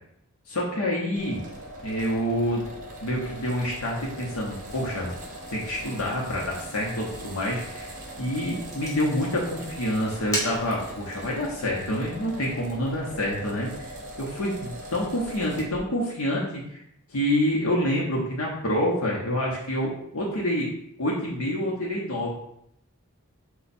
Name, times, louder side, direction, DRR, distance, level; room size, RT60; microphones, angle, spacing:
voice 1, 0.5-1.4 1.8-2.6 3.0-5.1 5.5-7.9 8.2-13.9 14.2-16.6 17.1-20.7 21.0-22.3, equal, 90° left, -4 dB, 0.9 m, -27 dB
sound 1, 1.2-15.8, right 1 dB, 40° right, 0.7 m, -41 dB
Fire, 4.4-11.2, left 1 dB, 15° left, 1.0 m, -39 dB
4.4 x 2.3 x 4.1 m, 0.76 s
head